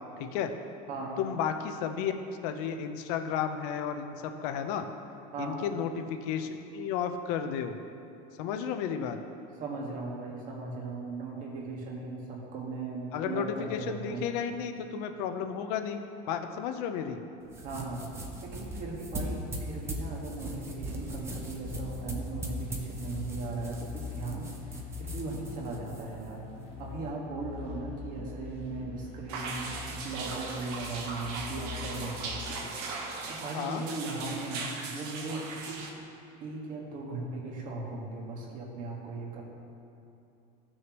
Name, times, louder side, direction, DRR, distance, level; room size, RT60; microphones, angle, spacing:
voice 1, 0.2-0.5 1.2-2.1 2.4-4.8 5.4-7.8 8.4-9.2 13.1-16.0 16.3-17.2 33.5-33.8, left 8 dB, 75° left, 7 dB, 0.8 m, -33 dB
voice 2, 0.9-1.2 5.3-5.6 9.6-14.2 17.6-18.1 18.4-26.4 26.8-32.6 33.3-35.9 36.4-39.4, right 3 dB, 40° right, -2 dB, 1.7 m, -38 dB
sound 1, 17.4-27.1, right 1 dB, 15° right, 0.7 m, -40 dB
sound 2, 21.6-32.3, left 6 dB, 30° left, 1.3 m, -43 dB
sound 3, 29.3-35.9, right 4 dB, 70° right, 1.2 m, -38 dB
15.0 x 6.3 x 3.0 m, 2.8 s
cardioid pair, 175°, 20 cm